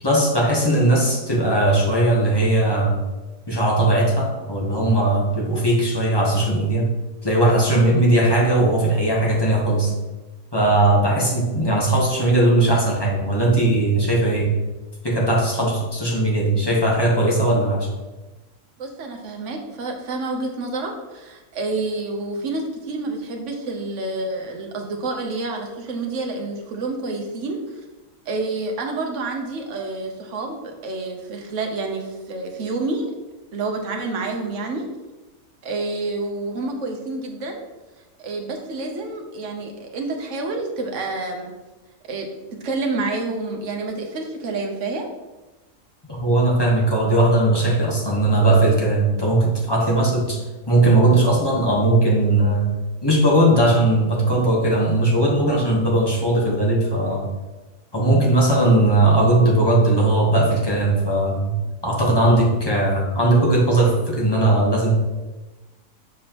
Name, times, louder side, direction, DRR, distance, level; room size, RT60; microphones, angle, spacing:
voice 1, 0.0-3.0 3.5-6.9 7.2-9.9 10.5-14.5 15.0-17.9 46.1-52.7 53.0-57.3 57.9-61.5 61.8-64.9, right 2 dB, 20° left, -4 dB, 1.1 m, -18 dB
voice 2, 18.8-27.6 28.3-33.0 33.5-34.8 35.6-37.6 38.2-41.5 42.1-45.1, right 3 dB, 60° right, 2 dB, 1.2 m, -28 dB
7.2 x 4.7 x 2.9 m, 1.1 s
omnidirectional pair, 1.5 m